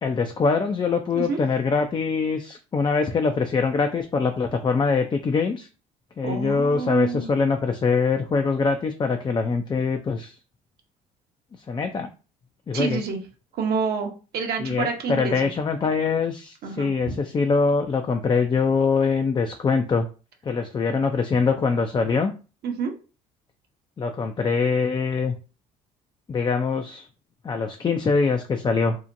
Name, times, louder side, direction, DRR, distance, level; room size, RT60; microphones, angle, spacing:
voice 1, 0.0-5.7 6.2-10.4 11.5-12.1 12.7-13.0 14.6-20.1 20.4-22.3 24.0-25.3 26.3-27.1 27.4-29.0, left 4 dB, 25° left, 5 dB, 0.4 m, -23 dB
voice 2, 6.2-7.3 12.7-13.2 13.6-15.5 16.6-17.1 22.6-22.9, right 5 dB, 55° right, 3 dB, 0.8 m, -28 dB
2.8 x 2.1 x 2.6 m, 0.34 s
hypercardioid pair, 65°, 19 cm